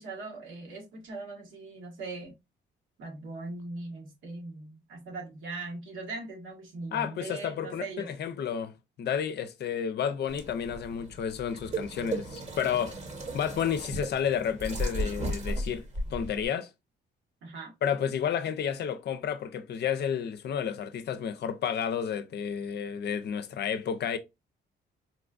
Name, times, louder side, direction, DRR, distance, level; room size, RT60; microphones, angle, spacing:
voice 1, 0.0-2.4 3.0-8.1 17.4-17.7, right 3 dB, 80° right, 1.4 m, -40 dB
voice 2, 6.9-8.7 9.0-13.0 13.3-15.9 16.1-16.7 17.8-24.2, left 8 dB, 60° left, 0.5 m, -31 dB
sound 1, 10.3-16.5, right 1 dB, 35° right, 1.0 m, -35 dB
4.2 x 2.3 x 2.4 m
cardioid pair, 90°, 20 cm